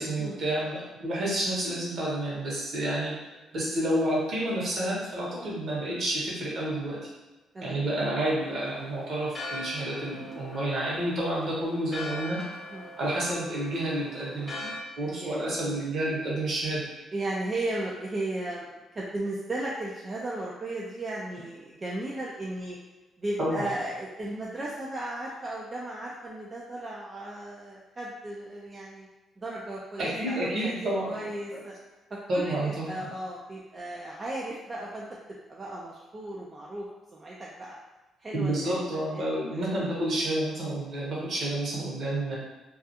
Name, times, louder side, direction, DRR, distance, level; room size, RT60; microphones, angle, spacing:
voice 1, 0.0-3.1 3.5-7.0 7.6-12.4 13.0-16.8 23.4-23.7 30.0-31.6 32.3-32.9 38.3-42.4, right 1 dB, 60° right, -5 dB, 0.9 m, -30 dB
Church bell, 8.4-14.8, left 1 dB, 30° left, 0.7 m, -41 dB
voice 2, 15.0-15.4 17.1-18.7 18.9-22.8 23.2-29.1 29.4-31.7 32.1-35.1 35.5-37.7 38.2-38.8 39.1-39.2 39.5-39.7, right 1 dB, 30° right, -4 dB, 0.4 m, -35 dB
2.4 x 2.3 x 2.7 m, 1.2 s
cardioid pair, 90°, 0 cm